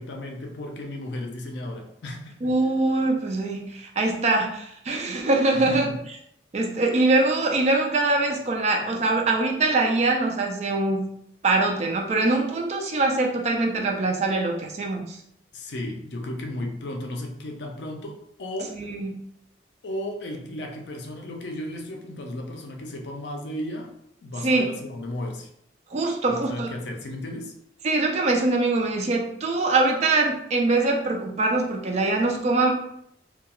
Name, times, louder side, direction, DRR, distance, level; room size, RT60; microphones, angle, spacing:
voice 1, 0.0-2.3 5.5-6.0 15.5-18.8 19.8-23.9 24.2-25.5 26.3-27.5, left 1 dB, 65° left, 2 dB, 0.4 m, -34 dB
voice 2, 2.4-5.9 6.5-11.1 11.4-15.2 18.7-19.1 24.4-24.7 25.9-26.7 27.8-32.7, right 2 dB, 35° right, 1 dB, 0.4 m, -23 dB
2.3 x 2.2 x 2.9 m, 0.73 s
head